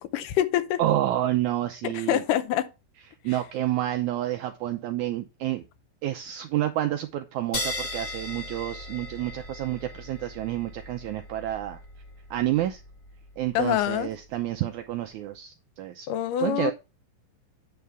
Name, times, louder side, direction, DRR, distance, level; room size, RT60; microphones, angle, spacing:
voice 1, 0.0-0.8 1.9-2.7 13.5-14.1 16.1-16.7, left 12 dB, 80° left, 2.2 m, -25 dB
voice 2, 0.8-2.2 3.2-5.6 6.0-11.8 12.3-12.8 13.4-16.1 16.4-16.7, right 13 dB, 80° right, 1.8 m, -29 dB
sound 1, 7.5-14.5, left 2 dB, 35° left, 1.4 m, -38 dB
9.5 x 3.5 x 6.7 m
omnidirectional pair, 4.1 m